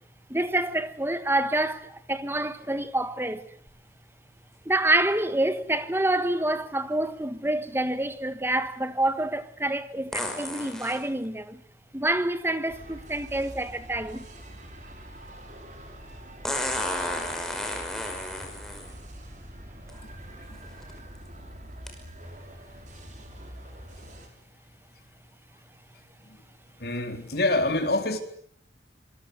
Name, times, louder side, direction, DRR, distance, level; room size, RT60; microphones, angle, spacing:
voice 1, 0.3-3.4 4.6-11.6 11.9-14.2, right 1 dB, 15° right, 1.5 m, -27 dB
sound 1, 10.1-11.0 13.0-13.1 16.4-18.9 19.9-20.0 20.6-20.9 21.9-22.0, left 1 dB, ahead, 5.5 m, -32 dB
sound 2, 12.7-24.3, right 1 dB, 40° right, 5.7 m, -45 dB
voice 2, 26.8-28.2, left 2 dB, 55° left, 4.0 m, -25 dB
26.5 x 23.0 x 8.2 m
head